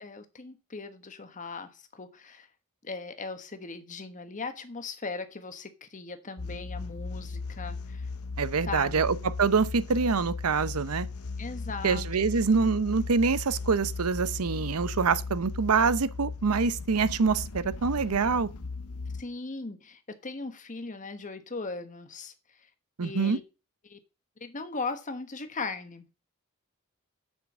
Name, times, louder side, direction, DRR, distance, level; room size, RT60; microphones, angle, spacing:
voice 1, 0.0-2.5 2.8-8.1 8.6-9.0 11.4-12.1 12.3-12.5 19.2-22.3 23.0-23.4 23.8-24.0 24.4-26.1, left 3 dB, 35° left, 1.3 m, -38 dB
sound 1, 6.4-19.2, left 4 dB, 80° left, 0.8 m, -37 dB
voice 2, 8.4-11.1 11.8-18.5 23.0-23.4, right 5 dB, 85° right, 0.7 m, -25 dB
7.4 x 6.1 x 7.3 m
head